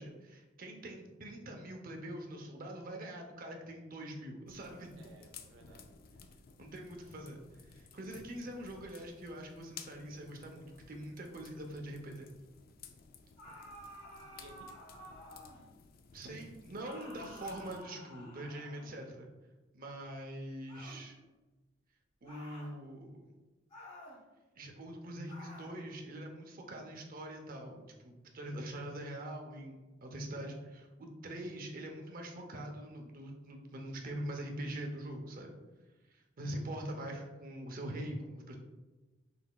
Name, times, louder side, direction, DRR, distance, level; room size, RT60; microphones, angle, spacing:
voice 1, 0.0-4.9 6.6-12.3 16.1-19.3 19.7-21.2 22.2-23.3 24.5-35.5 36.1-38.5, right 1 dB, 50° right, 2 dB, 0.7 m, -44 dB
sound 1, 4.5-17.8, left 6 dB, 50° left, 0.3 m, -56 dB
voice 2, 5.0-6.0 14.2-15.4 36.4-36.9, right 2 dB, 85° right, 2 dB, 0.4 m, -59 dB
sound 2, 13.4-15.7 16.8-19.1 20.7-21.1 22.3-22.7 23.7-24.2 25.3-25.7, equal, 35° left, 1.2 m, -52 dB
5.8 x 3.4 x 2.3 m, 1.2 s
head